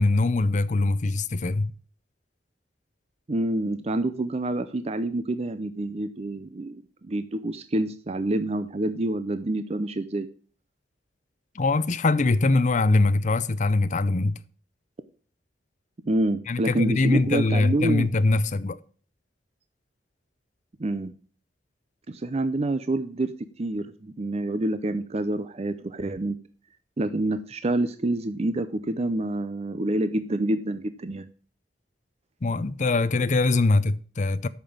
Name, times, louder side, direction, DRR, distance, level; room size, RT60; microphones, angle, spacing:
voice 1, 0.0-1.7 11.5-14.4 16.5-18.8 32.4-34.5, left 3 dB, 45° left, 0.6 m, -22 dB
voice 2, 3.3-10.3 16.0-18.1 20.8-21.1 22.1-23.3 23.6-26.4 27.0-31.2, right 1 dB, 35° right, 0.5 m, -27 dB
8.5 x 5.9 x 7.2 m
head